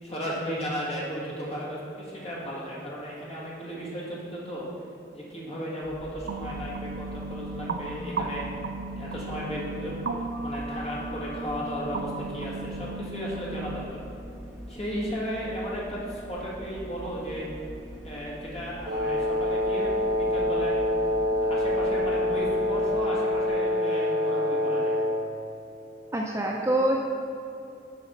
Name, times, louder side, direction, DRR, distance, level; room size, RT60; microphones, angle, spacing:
voice 1, 0.0-4.7 5.1-8.5 8.9-14.0 14.7-17.5 18.0-20.9 21.4-25.0, equal, 35° left, -6 dB, 1.8 m, -35 dB
sound 1, 5.8-23.1 23.5-23.6, equal, ahead, 1.5 m, -43 dB
sound 2, 6.3-13.8, right 3 dB, 80° right, 0.4 m, -36 dB
Wind instrument woodwind instrument, 18.9-25.3, left 1 dB, 60° right, 1.0 m, -26 dB
voice 2, 26.1-27.0, right 1 dB, 15° right, -1 dB, 0.5 m, -25 dB
7.4 x 4.0 x 6.5 m, 2.7 s
head